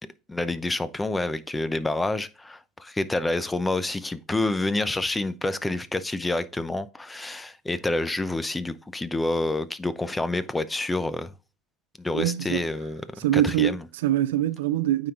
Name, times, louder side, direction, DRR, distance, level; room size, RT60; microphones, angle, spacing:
voice 1, 0.3-11.3 12.0-13.8, left 2 dB, 10° left, 0.7 m, -28 dB
voice 2, 12.1-12.7 13.2-15.1, right 13 dB, 90° right, 0.4 m, -24 dB
9.0 x 3.9 x 3.8 m
supercardioid pair, 95°, 0 cm